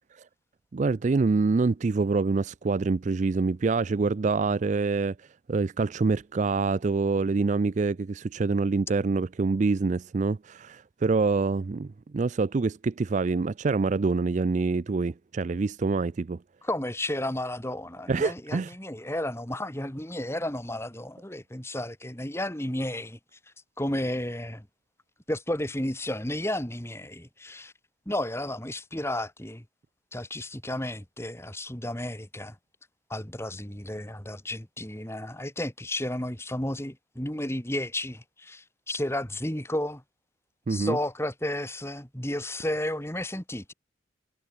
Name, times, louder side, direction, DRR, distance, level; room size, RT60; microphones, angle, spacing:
voice 1, 0.7-5.1 5.5-16.4 18.1-18.7 40.7-41.0, right 4 dB, 40° right, 0.4 m, -26 dB
voice 2, 16.6-23.2 23.8-24.7 25.3-27.7 28.1-29.6 30.1-32.5 33.1-40.0 40.7-43.7, left 1 dB, 15° left, 3.0 m, -32 dB
head